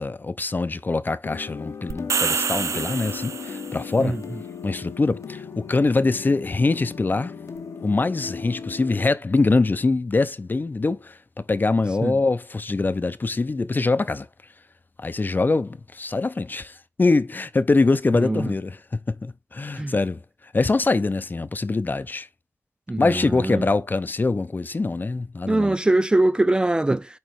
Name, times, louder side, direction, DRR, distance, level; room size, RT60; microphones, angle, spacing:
voice 1, 0.0-4.2 4.6-7.3 7.8-14.3 15.0-18.8 19.1-20.2 20.5-22.3 23.0-25.7, left 3 dB, 40° left, 0.7 m, -23 dB
sound 1, 1.2-9.0, left 6 dB, 90° left, 1.0 m, -37 dB
sound 2, 1.9-3.8, right 6 dB, 80° right, 0.5 m, -27 dB
voice 2, 22.9-23.6 25.5-27.2, right 2 dB, 15° right, 0.3 m, -22 dB
9.0 x 3.2 x 4.7 m
wide cardioid pair, 90°, 5 cm